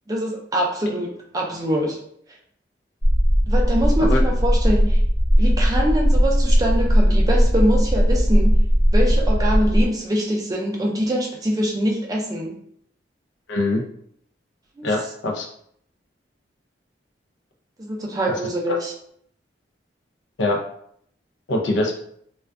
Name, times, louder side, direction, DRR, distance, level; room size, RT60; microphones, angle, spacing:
voice 1, 0.1-2.0 3.5-5.0 5.4-8.5 8.9-12.6 14.8-14.9 17.8-18.9, equal, 20° right, -1 dB, 0.3 m, -24 dB
sound 1, 3.0-9.9, equal, 40° left, 0.6 m, -17 dB
voice 2, 13.5-13.8 14.8-15.5 18.3-18.4 20.4-20.6 21.5-21.9, left 2 dB, 85° left, 1 dB, 0.5 m, -22 dB
2.4 x 2.3 x 2.2 m, 0.67 s
head